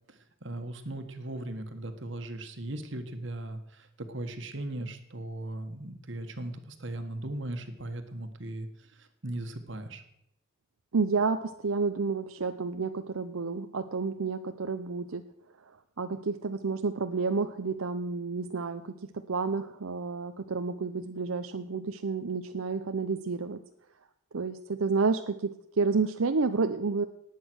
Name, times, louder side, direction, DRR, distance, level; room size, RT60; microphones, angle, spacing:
voice 1, 0.4-8.7 9.0-10.0, right 1 dB, 60° right, 8 dB, 1.6 m, -38 dB
voice 2, 10.9-15.2 16.0-23.6 24.3-27.0, right 4 dB, 80° right, 8 dB, 0.7 m, -30 dB
18.5 x 8.4 x 6.3 m, 0.80 s
head